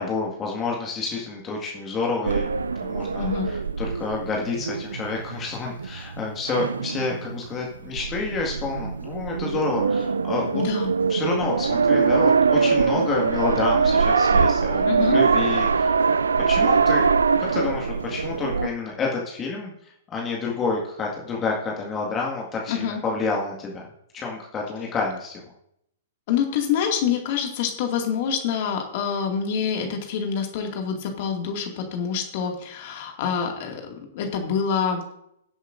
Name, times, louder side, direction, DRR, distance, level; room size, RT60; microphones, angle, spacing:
voice 1, 0.0-2.5 2.8-10.6 11.1-14.8 15.1-16.0 16.5-17.0 17.4-23.9 24.1-25.4, left 4 dB, 20° left, -2 dB, 1.9 m, -29 dB
sound 1, 2.2-18.7, right 5 dB, 75° right, 0.4 m, -23 dB
voice 2, 3.2-3.5 10.5-10.9 14.9-15.2 22.7-23.0 26.3-35.0, left 7 dB, 50° left, 3 dB, 2.2 m, -26 dB
21.0 x 8.0 x 2.6 m, 0.77 s
figure-of-eight pair, 110°, 0 cm